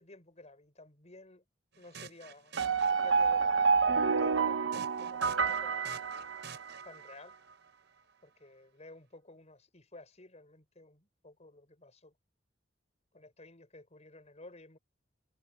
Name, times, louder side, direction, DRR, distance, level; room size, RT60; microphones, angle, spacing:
voice 1, 0.0-1.4 1.8-6.0 6.8-7.4 8.2-12.2 13.1-14.8, left 2 dB, 35° left, 7.0 m, -53 dB
sound 1, 1.7-3.5 4.7-7.2, right 6 dB, 65° right, 7.3 m, -50 dB
sound 2, 2.6-6.9, right 5 dB, 85° right, 1.0 m, -28 dB
head